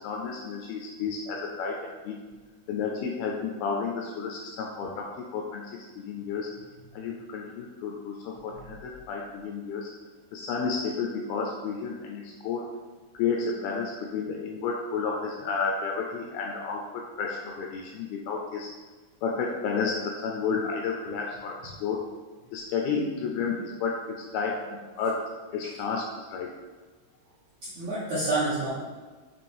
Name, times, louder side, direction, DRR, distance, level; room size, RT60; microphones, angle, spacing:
voice 1, 0.0-2.2 2.7-6.5 6.9-9.9 10.3-12.7 13.2-18.7 19.2-22.0 22.5-24.1 24.3-26.5, left 5 dB, 85° left, 0 dB, 2.2 m, -31 dB
voice 2, 27.7-28.7, right 2 dB, 75° right, -9 dB, 1.6 m, -29 dB
7.2 x 3.1 x 4.3 m, 1.3 s
omnidirectional pair, 4.7 m